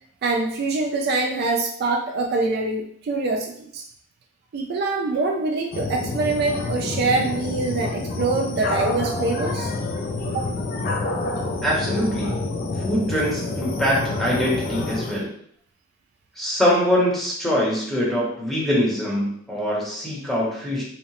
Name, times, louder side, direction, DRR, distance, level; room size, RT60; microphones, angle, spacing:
voice 1, 0.2-3.8 4.5-9.7 10.2-10.5, right 3 dB, 55° right, 2 dB, 0.3 m, -24 dB
sound 1, 5.7-15.2, left 3 dB, 50° left, 0.4 m, -28 dB
voice 2, 11.6-12.4 12.8-15.3 16.4-20.8, equal, ahead, -6 dB, 0.7 m, -23 dB
2.7 x 2.0 x 2.9 m, 0.65 s
head